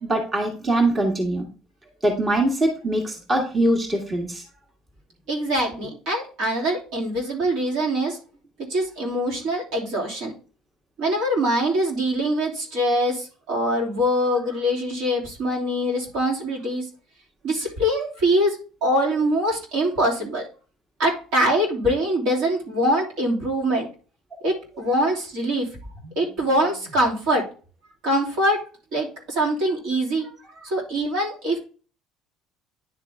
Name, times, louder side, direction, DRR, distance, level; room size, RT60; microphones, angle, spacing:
voice 1, 0.0-1.5 2.0-4.4, right 1 dB, 25° right, 2 dB, 1.7 m, -22 dB
voice 2, 5.3-8.2 8.7-10.3 11.0-16.9 17.4-20.5 21.0-23.9 24.4-25.7 26.0-27.5 28.0-28.6 28.9-30.3 30.6-31.6, equal, 70° right, -2 dB, 3.0 m, -23 dB
10.0 x 3.6 x 3.5 m, 0.37 s
supercardioid pair, 95°, 0 cm